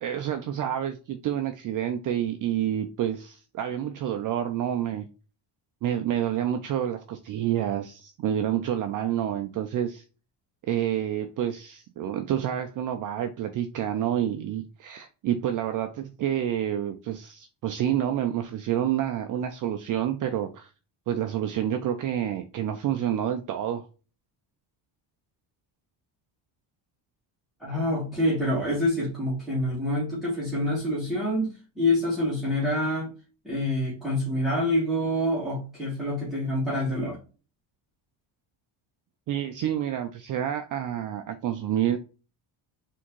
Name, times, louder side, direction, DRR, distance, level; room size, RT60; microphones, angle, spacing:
voice 1, 0.0-5.1 5.8-10.0 10.6-20.7 21.1-23.9 39.3-42.0, right 10 dB, 45° right, 0.5 m, -28 dB
voice 2, 27.6-33.1 33.4-37.2, left 1 dB, ahead, 1.8 m, -26 dB
4.5 x 3.6 x 3.0 m
cardioid pair, 165°, 47 cm